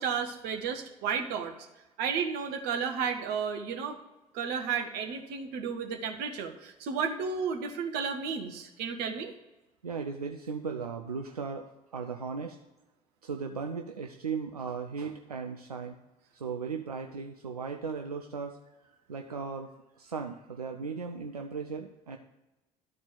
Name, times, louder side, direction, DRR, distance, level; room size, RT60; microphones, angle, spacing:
voice 1, 0.0-1.5 2.0-4.0 4.3-9.3, right 6 dB, 55° right, 5 dB, 1.1 m, -32 dB
voice 2, 9.8-11.6 11.9-12.6 13.2-16.0 16.3-19.7 20.0-22.2, right 5 dB, 85° right, 4 dB, 0.5 m, -37 dB
12.0 x 4.3 x 6.7 m, 1.0 s
figure-of-eight pair, 55°, 19 cm